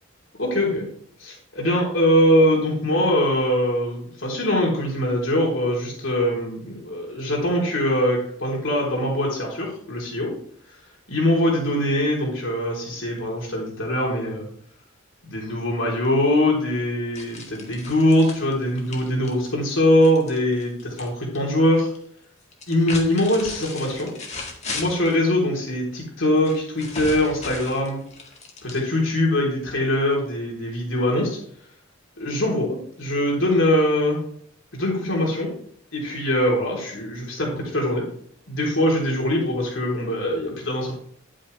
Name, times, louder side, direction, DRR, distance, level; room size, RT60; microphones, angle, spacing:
voice 1, 0.4-0.9 1.2-10.3 11.1-14.5 15.2-21.9 22.7-24.1 24.7-28.0 28.6-31.4 32.2-34.2 34.7-35.5 35.9-38.1 38.5-41.0, left 1 dB, 70° left, -2 dB, 3.8 m, -22 dB
sound 1, 17.1-21.1 21.3-22.0 22.5-25.2 26.4-29.1, left 3 dB, 35° left, 1.9 m, -37 dB
11.0 x 8.6 x 3.4 m, 0.62 s
head